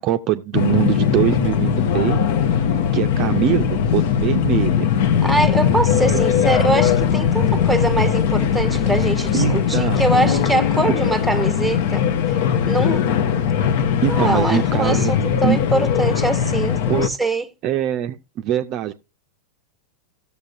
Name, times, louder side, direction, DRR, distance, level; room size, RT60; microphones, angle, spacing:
voice 1, 0.0-2.2 2.6-2.7 2.9-4.9 9.3-10.1 14.0-15.1 15.4-15.6 16.9-17.1 17.6-18.9, right 11 dB, 40° right, 0.5 m, -22 dB
sound 1, 0.5-17.1, left 8 dB, 50° left, 0.7 m, -19 dB
voice 2, 5.2-12.1 12.7-13.1 14.1-17.5, right 2 dB, ahead, 0.8 m, -23 dB
17.0 x 6.8 x 2.5 m
figure-of-eight pair, 90°, 0 cm